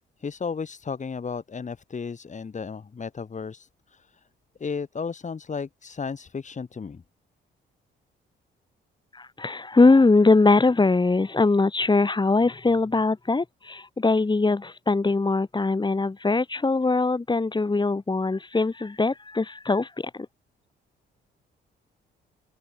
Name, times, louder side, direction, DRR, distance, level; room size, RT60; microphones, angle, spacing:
voice 1, 0.2-4.2 4.6-7.0, left 5 dB, 35° left, 7.7 m, -34 dB
voice 2, 9.1-20.3, left 3 dB, 20° left, 7.6 m, -21 dB
open air
cardioid pair, 90°, 20 cm